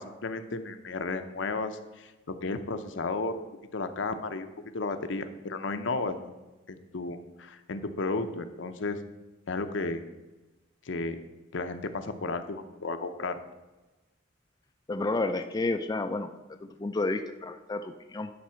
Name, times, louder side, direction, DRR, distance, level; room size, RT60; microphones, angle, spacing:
voice 1, 0.0-3.4 3.7-4.5 4.7-6.3 6.7-9.0 9.5-10.0 10.8-11.2 11.5-13.3, left 3 dB, 70° left, 8 dB, 0.7 m, -33 dB
voice 2, 14.9-16.3 16.6-18.3, left 2 dB, 20° left, 6 dB, 0.3 m, -30 dB
10.5 x 4.1 x 5.7 m, 1.1 s
head